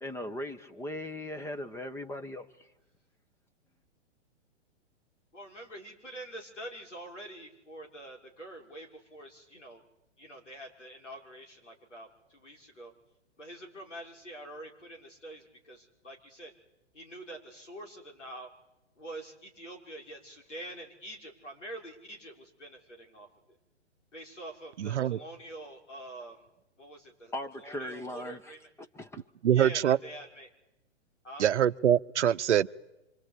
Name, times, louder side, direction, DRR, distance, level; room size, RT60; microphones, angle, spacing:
voice 1, 0.0-2.7 27.3-28.5 28.9-29.2, left 1 dB, 5° left, 9 dB, 1.3 m, -39 dB
voice 2, 5.3-9.8 10.2-12.9 13.4-16.5 16.9-18.5 19.0-23.6 24.1-26.5 26.8-28.7 29.5-30.5 31.2-31.5, right 1 dB, 90° left, 2 dB, 6.0 m, -46 dB
voice 3, 24.8-25.2 29.4-30.0 31.4-32.7, right 10 dB, 70° right, 14 dB, 0.9 m, -24 dB
26.0 x 25.5 x 8.4 m, 0.94 s
hypercardioid pair, 120°, 35 cm